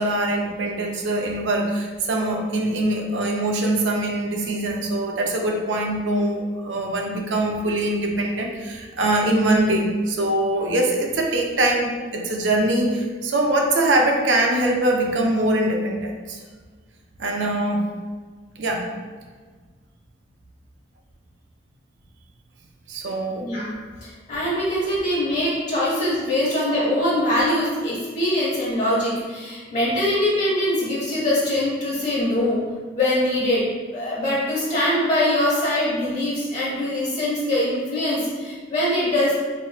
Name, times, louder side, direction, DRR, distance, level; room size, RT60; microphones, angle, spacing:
voice 1, 0.0-16.4 17.2-17.8 18.6-18.9 22.9-23.5, right 1 dB, 85° right, 1 dB, 0.5 m, -23 dB
voice 2, 23.4-23.7 24.0-32.6 32.9-33.6 33.9-39.4, left 1 dB, 40° left, -8 dB, 1.3 m, -23 dB
4.2 x 2.5 x 2.3 m, 1.5 s
head